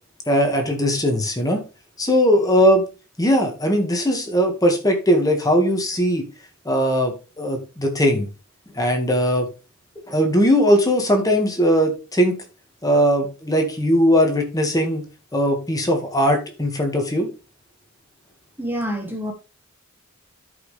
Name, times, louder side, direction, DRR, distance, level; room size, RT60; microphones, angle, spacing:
voice 1, 0.3-1.6 2.0-2.8 3.2-6.2 6.7-8.3 8.8-9.5 10.1-12.3 12.8-15.0 15.3-17.3, equal, 20° left, 1.8 m, -19 dB
voice 2, 18.6-19.3, equal, 10° right, 1.4 m, -27 dB
12.5 x 5.5 x 3.3 m
head